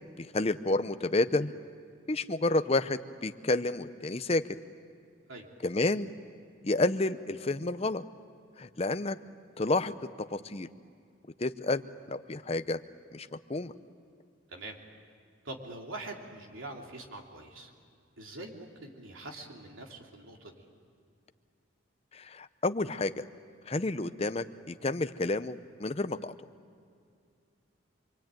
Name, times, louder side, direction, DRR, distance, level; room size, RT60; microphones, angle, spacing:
voice 1, 0.2-1.5 2.1-4.4 5.6-6.1 6.6-8.0 8.6-9.2 9.6-10.7 11.4-12.8 13.1-13.7 22.1-23.2 23.7-26.3, left 2 dB, 30° left, 11 dB, 0.7 m, -30 dB
voice 2, 15.4-17.7 18.2-20.5, right 2 dB, 80° right, 1 dB, 3.3 m, -44 dB
27.5 x 23.5 x 9.1 m, 2.4 s
head